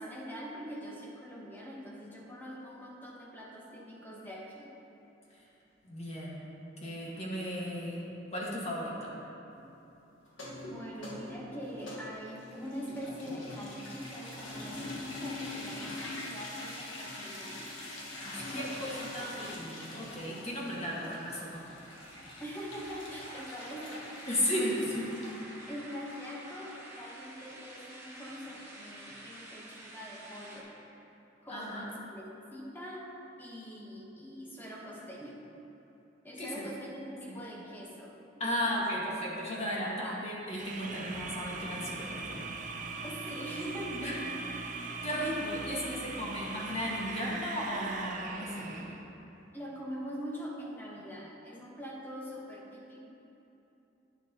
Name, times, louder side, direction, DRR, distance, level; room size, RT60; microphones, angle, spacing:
voice 1, 0.0-4.7 9.5-9.7 10.7-17.7 18.4-19.0 22.4-24.3 24.6-24.7 25.7-30.8 31.4-33.1 33.4-35.4 36.2-38.8 39.5-40.2 43.0-44.4 45.2-45.3 45.7-46.2 49.5-53.0, equal, 10° left, -3 dB, 1.1 m, -43 dB
voice 2, 5.8-6.5 6.8-8.0 8.3-9.1 18.2-21.6 24.3-25.0 31.5-31.9 36.4-36.7 37.3-37.4 38.4-42.5 43.9-44.1 44.8-48.9, equal, 35° left, -5 dB, 1.7 m, -35 dB
sound 1, 10.3-25.4, left 1 dB, 80° left, 1.6 m, -44 dB
sound 2, 21.6-30.6, right 1 dB, 15° right, 1.2 m, -49 dB
sound 3, 40.5-49.0, right 3 dB, 40° right, 0.7 m, -40 dB
11.0 x 9.1 x 3.0 m, 3.0 s
head